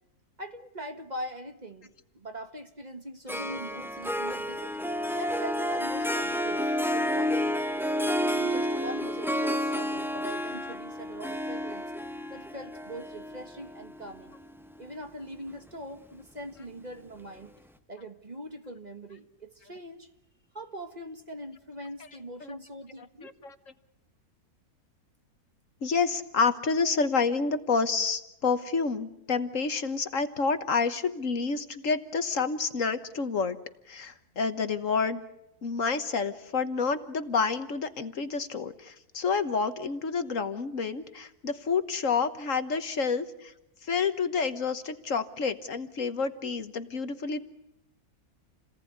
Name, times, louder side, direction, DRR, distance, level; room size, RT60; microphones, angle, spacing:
voice 1, 0.4-4.8 5.1-7.7 8.2-11.9 12.3-14.3 14.8-17.5 17.9-20.1 20.5-23.3, right 1 dB, 30° right, 6 dB, 1.7 m, -42 dB
Harp, 3.3-14.7, equal, ahead, 0.8 m, -30 dB
voice 2, 23.2-23.5 25.8-33.6 33.9-35.2 35.6-43.5 43.8-47.5, left 5 dB, 60° left, 10 dB, 1.5 m, -29 dB
29.0 x 18.5 x 9.5 m, 0.87 s
omnidirectional pair, 1.6 m